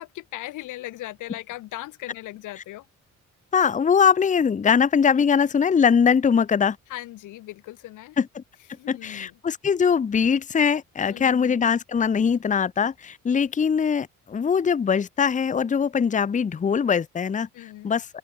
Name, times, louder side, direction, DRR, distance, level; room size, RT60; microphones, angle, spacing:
voice 1, 0.0-2.9 6.9-8.2 8.7-9.3 11.0-11.5 17.5-17.9, left 16 dB, 90° left, 3.8 m, -38 dB
voice 2, 3.5-6.8 8.2-8.4 8.9-18.1, left 6 dB, 25° left, 0.7 m, -22 dB
cardioid pair, 90°, 30 cm